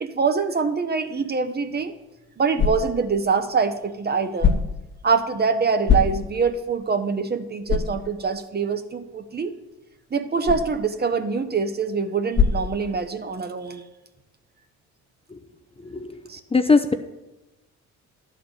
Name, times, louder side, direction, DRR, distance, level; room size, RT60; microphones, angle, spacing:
voice 1, 0.0-1.9 2.4-4.5 5.0-9.5 10.1-13.8 16.3-16.4, right 5 dB, 35° right, 9 dB, 0.9 m, -24 dB
sound 1, 1.7-13.4, left 6 dB, 35° left, 1.4 m, -28 dB
voice 2, 15.8-16.1 16.5-16.9, left 4 dB, 20° left, 8 dB, 0.6 m, -20 dB
11.0 x 4.4 x 7.9 m, 1.0 s
cardioid pair, 90°, 30 cm